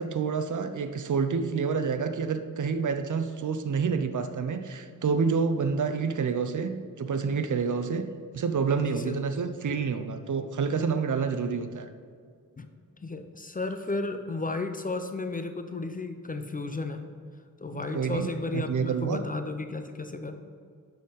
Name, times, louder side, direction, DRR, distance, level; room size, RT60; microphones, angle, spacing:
voice 1, 0.0-8.1 8.3-11.9 17.9-18.3 18.5-19.2, right 5 dB, 60° right, 9 dB, 0.6 m, -28 dB
voice 2, 8.8-9.1 12.6-12.7 13.0-17.0 17.6-20.4, left 3 dB, 25° left, 7 dB, 0.4 m, -33 dB
11.5 x 4.2 x 3.9 m, 2.1 s
wide cardioid pair, 110°, 34 cm